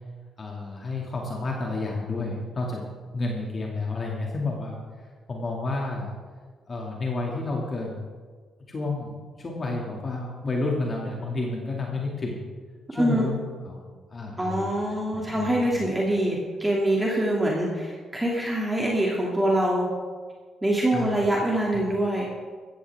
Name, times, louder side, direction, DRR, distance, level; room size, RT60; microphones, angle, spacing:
voice 1, 0.4-2.8 3.1-4.8 5.3-6.1 6.7-8.1 8.7-12.4 12.9-13.4 13.6-13.8 14.1-14.7 15.1-15.8 20.9-21.1 21.4-21.8, left 2 dB, 40° left, -1 dB, 2.4 m, -30 dB
voice 2, 12.9-13.2 14.4-19.9 20.6-22.3, right 1 dB, 15° right, -3 dB, 2.6 m, -24 dB
15.0 x 14.5 x 3.6 m, 1.5 s
cardioid pair, 90°, 0 cm